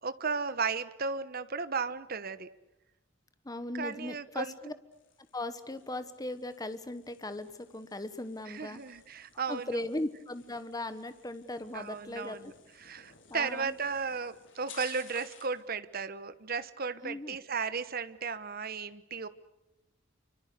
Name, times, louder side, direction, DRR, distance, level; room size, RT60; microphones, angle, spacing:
voice 1, 0.0-2.5 3.7-4.6 8.5-9.8 11.7-12.5 12.8-19.3, right 5 dB, 50° right, 13 dB, 1.2 m, -35 dB
voice 2, 3.4-4.7 5.3-8.8 9.5-12.5 13.3-13.8 17.0-17.4, left 1 dB, 20° left, 11 dB, 1.2 m, -38 dB
sound 1, 4.9-15.6, left 7 dB, 70° left, 4.7 m, -56 dB
29.0 x 25.0 x 6.7 m, 0.99 s
head